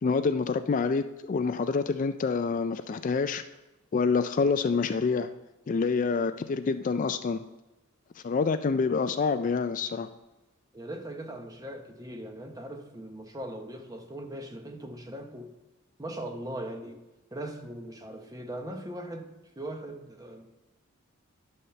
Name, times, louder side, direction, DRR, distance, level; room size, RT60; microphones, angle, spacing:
voice 1, 0.0-3.4 3.9-5.3 5.7-7.4 8.2-10.1, left 4 dB, 40° left, 0.3 m, -27 dB
voice 2, 10.7-15.5 16.0-17.0 17.3-19.3 19.6-20.5, right 1 dB, 15° right, 0.9 m, -39 dB
11.0 x 4.2 x 6.5 m
head